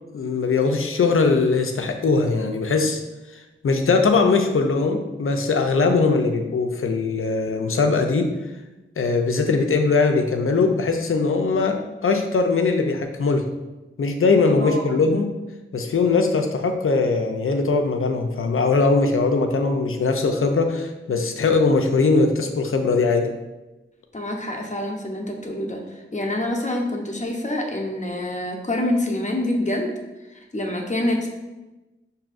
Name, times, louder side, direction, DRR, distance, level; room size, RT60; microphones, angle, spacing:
voice 1, 0.1-3.0 3.3-8.3 9.0-13.4 14.0-15.3 15.7-23.3, left 4 dB, 80° left, 5 dB, 0.5 m, -20 dB
voice 2, 14.6-15.0 24.1-25.8 26.1-29.9 30.3-31.3, left 1 dB, 35° left, 0 dB, 0.7 m, -26 dB
5.9 x 2.7 x 2.5 m, 1.1 s
wide cardioid pair, 50°, 21 cm